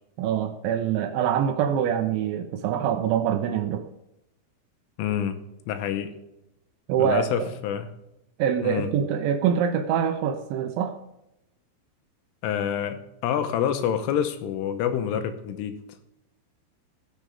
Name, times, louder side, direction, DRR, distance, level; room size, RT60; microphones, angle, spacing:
voice 1, 0.2-3.9 6.9-7.5 8.4-11.0, right 8 dB, 80° right, 7 dB, 2.9 m, -25 dB
voice 2, 5.0-5.4 5.7-6.1 7.0-7.9 8.6-8.9 12.4-13.0 13.2-15.8, left 9 dB, 85° left, 8 dB, 3.4 m, -27 dB
19.0 x 6.6 x 3.5 m, 0.87 s
omnidirectional pair, 5.8 m